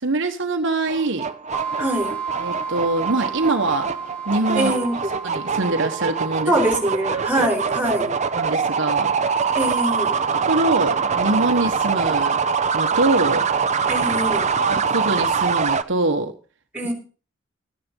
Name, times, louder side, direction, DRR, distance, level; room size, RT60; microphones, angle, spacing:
voice 1, 0.0-1.3 2.4-3.9 4.3-4.7 5.2-6.5 8.4-9.1 10.5-12.4 12.7-13.4 14.6-16.3, right 2 dB, 65° right, 5 dB, 1.3 m, -23 dB
sound 1, 0.9-15.8, right 5 dB, 35° right, 0.8 m, -23 dB
sound 2, 1.5-8.0, right 6 dB, 10° left, 4.3 m, -33 dB
voice 2, 1.8-2.2 4.5-5.2 6.5-8.1 9.5-10.2 13.9-14.5 16.7-16.9, right 1 dB, 10° right, 2 dB, 4.7 m, -23 dB
13.5 x 10.5 x 5.4 m, 0.37 s
head